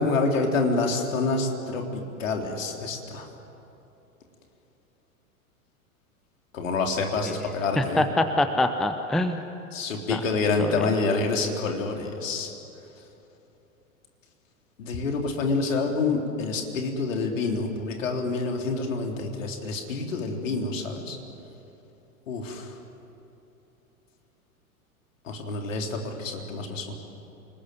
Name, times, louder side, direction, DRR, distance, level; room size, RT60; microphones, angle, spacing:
voice 1, 0.0-3.3 6.5-8.1 9.7-12.5 14.8-21.2 22.3-22.7 25.3-26.9, left 3 dB, 60° left, 2 dB, 3.7 m, -27 dB
voice 2, 7.8-9.4 10.1-10.2 10.6-10.9, left 1 dB, ahead, 8 dB, 0.7 m, -25 dB
28.5 x 20.0 x 9.5 m, 3.0 s
figure-of-eight pair, 95°, 44 cm